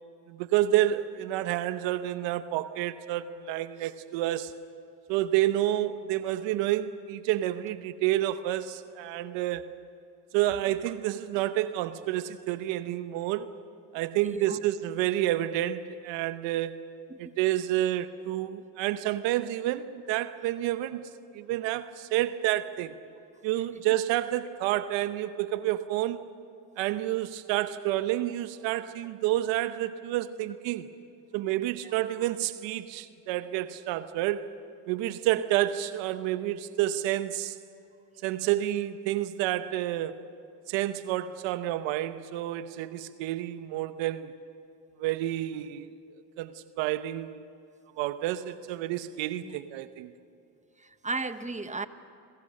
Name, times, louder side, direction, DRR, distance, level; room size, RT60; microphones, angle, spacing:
voice 1, 0.3-4.5 5.1-9.7 10.3-13.5 13.9-16.8 17.2-21.0 21.3-22.9 23.4-26.3 26.8-30.9 31.3-34.5 34.9-37.6 38.2-40.2 40.7-44.3 45.0-45.9 46.4-47.4 48.0-50.1, right 14 dB, 80° right, 1.1 m, -29 dB
voice 2, 14.2-14.6 17.1-17.4 31.8-31.9 49.4-49.6 50.8-51.9, right 3 dB, 15° right, 1.2 m, -35 dB
26.5 x 22.0 x 6.5 m
supercardioid pair, 70°, 44 cm